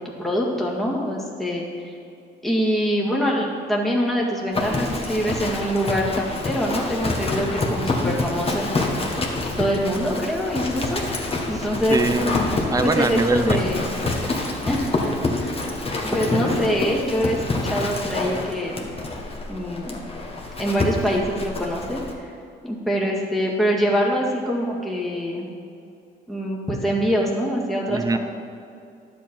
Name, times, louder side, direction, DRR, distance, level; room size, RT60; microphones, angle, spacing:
voice 1, 0.0-1.9 2.4-8.7 9.6-12.0 12.8-13.9 14.6-15.6 16.0-18.9 19.5-20.0 20.6-22.3 22.6-25.5 26.3-28.2, equal, ahead, -3 dB, 1.8 m, -24 dB
Livestock farm animals working animals, 4.5-22.1, left 2 dB, 30° left, 1.4 m, -27 dB
voice 2, 11.5-12.4 12.7-14.2 14.5-14.6 27.9-28.2, right 3 dB, 15° right, 9 dB, 0.6 m, -24 dB
11.0 x 7.6 x 4.4 m, 2.4 s
cardioid pair, 90°, 20 cm